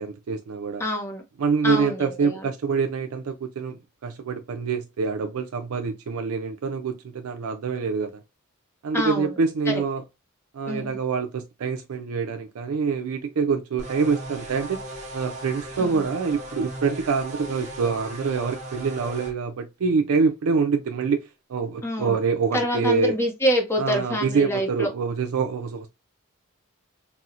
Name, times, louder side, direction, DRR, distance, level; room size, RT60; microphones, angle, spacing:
voice 1, 0.0-0.8 1.4-8.2 8.8-10.0 10.5-14.8 15.1-21.2 21.5-23.2 23.8-25.9, right 5 dB, 75° right, 0.4 m, -25 dB
voice 2, 0.8-1.2 1.6-2.5 8.9-9.3 9.7-9.8 10.7-11.0 15.8-16.0 21.8-22.2 22.5-24.9, equal, 10° left, 0.6 m, -26 dB
sound 1, 13.8-19.3, right 1 dB, 30° right, 1.0 m, -37 dB
4.2 x 2.0 x 2.4 m
head